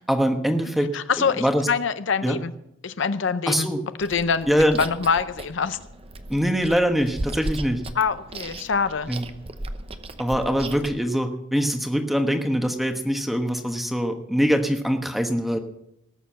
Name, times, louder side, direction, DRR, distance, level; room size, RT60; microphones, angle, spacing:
voice 1, 0.0-0.9 1.2-1.7 2.2-2.4 3.5-3.8 4.5-4.8 6.3-7.8 9.1-9.3 10.2-15.6, equal, ahead, 5 dB, 1.1 m, -23 dB
voice 2, 0.9-2.5 2.8-3.7 4.0-4.5 4.8-5.8 8.0-9.1, left 5 dB, 65° left, 12 dB, 0.6 m, -24 dB
Chewing mastication, 4.0-11.0, right 2 dB, 30° right, 0.8 m, -36 dB
19.0 x 6.8 x 7.7 m, 0.82 s
head